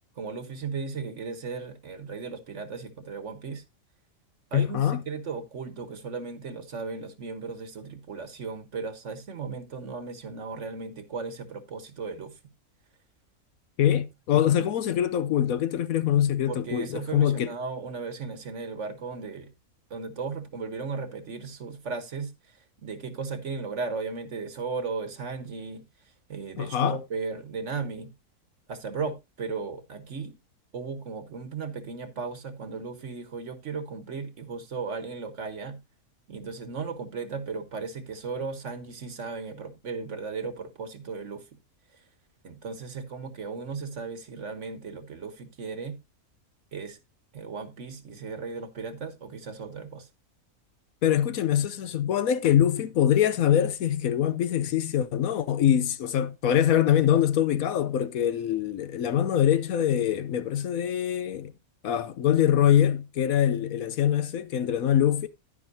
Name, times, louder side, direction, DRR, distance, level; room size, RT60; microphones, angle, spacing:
voice 1, 0.2-3.6 4.5-12.4 14.3-14.7 16.5-19.5 19.9-25.8 26.3-28.1 28.7-30.3 30.7-35.8 36.3-41.4 41.9-42.0 42.4-46.0 46.7-47.0 47.3-50.1, right 4 dB, 55° right, 1.5 m, -36 dB
voice 2, 4.5-5.0 13.8-17.5 26.6-27.0 51.0-61.5 61.8-65.3, left 10 dB, 70° left, 1.1 m, -24 dB
10.5 x 9.9 x 2.7 m
omnidirectional pair, 1.6 m